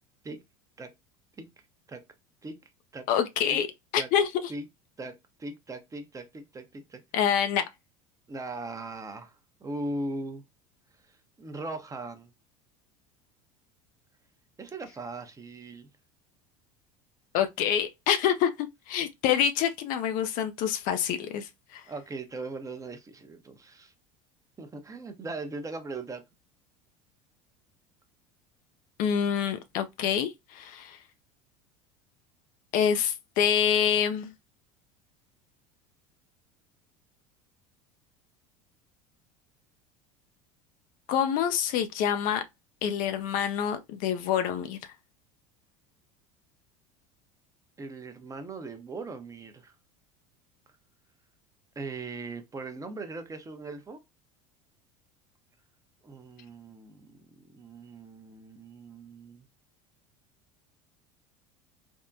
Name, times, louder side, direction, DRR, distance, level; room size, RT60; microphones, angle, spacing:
voice 1, 3.1-3.7 3.9-4.5 7.1-7.7 17.3-21.8 29.0-31.0 32.7-34.3 41.1-42.4 42.8-44.8, left 8 dB, 55° left, 0.4 m, -26 dB
voice 2, 5.0-7.0 8.3-9.4 9.6-10.4 11.1-12.3 14.6-15.9 21.9-23.9 24.6-26.2 47.8-49.7 51.8-54.0 56.0-59.5, right 2 dB, 20° right, 0.6 m, -39 dB
3.5 x 2.1 x 2.5 m
hypercardioid pair, 85°, 17 cm